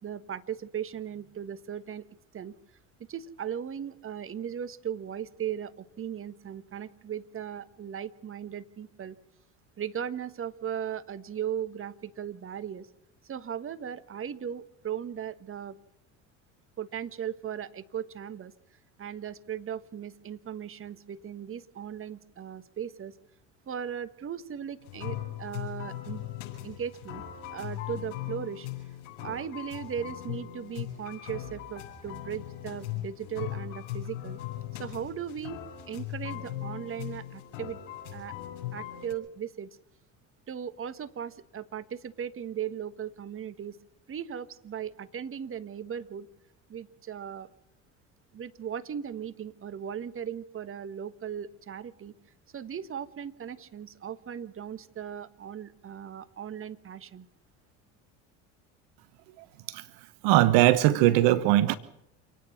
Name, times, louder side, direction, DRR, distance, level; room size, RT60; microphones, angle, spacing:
voice 1, 0.0-2.0 2.3-2.5 3.1-9.1 9.8-12.9 13.2-15.8 16.8-18.5 19.0-23.2 23.7-26.2 26.6-27.2 27.5-28.7 29.2-34.4 34.8-37.8 38.1-38.3 38.7-39.7 40.5-43.8 44.1-46.3 46.7-47.5 48.3-52.1 52.5-57.3, right 8 dB, 35° right, 13 dB, 1.5 m, -37 dB
sound 1, 24.8-39.1, left 13 dB, 85° left, 6.9 m, -39 dB
voice 2, 59.4-59.8 60.2-61.8, right 15 dB, 70° right, 15 dB, 1.1 m, -21 dB
28.0 x 9.5 x 9.9 m, 0.82 s
hypercardioid pair, 75°, 37 cm